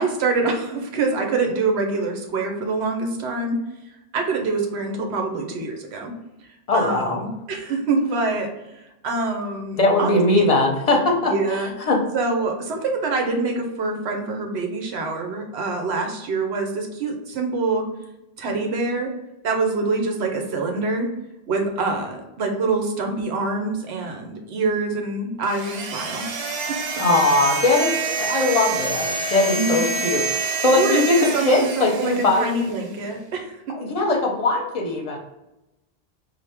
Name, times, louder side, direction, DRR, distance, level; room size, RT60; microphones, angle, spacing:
voice 1, 0.0-3.6 4.1-6.1 6.4-6.5 6.7-8.5 8.7-10.5 11.2-11.7 12.1-17.9 18.4-19.1 19.4-21.1 21.5-26.2 26.7-27.1 29.5-29.9 30.7-31.0 31.3-33.8, right 3 dB, 75° right, 3 dB, 1.0 m, -25 dB
voice 2, 6.7-7.2 9.8-12.0 27.0-32.5 33.7-35.2, left 2 dB, 40° left, 1 dB, 0.7 m, -20 dB
sound 1, 25.4-32.8, right 4 dB, 55° right, 0.5 m, -27 dB
4.2 x 2.1 x 3.4 m, 0.94 s
omnidirectional pair, 1.1 m